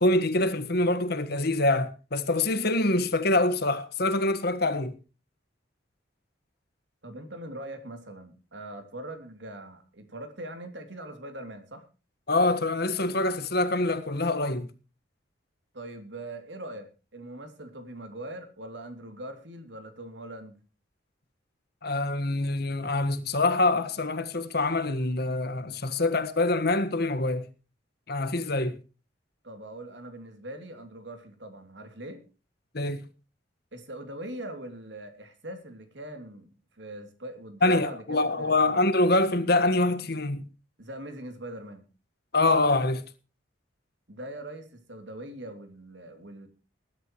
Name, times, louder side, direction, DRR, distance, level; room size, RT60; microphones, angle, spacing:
voice 1, 0.0-4.9 12.3-14.7 21.8-27.4 28.1-28.8 32.7-33.0 37.6-40.4 42.3-43.0, left 2 dB, 60° left, 1.5 m, -25 dB
voice 2, 7.0-11.9 15.7-20.5 29.4-32.2 33.7-38.8 40.8-41.8 44.1-46.5, right 1 dB, 70° right, 3.0 m, -41 dB
20.0 x 12.0 x 3.1 m
head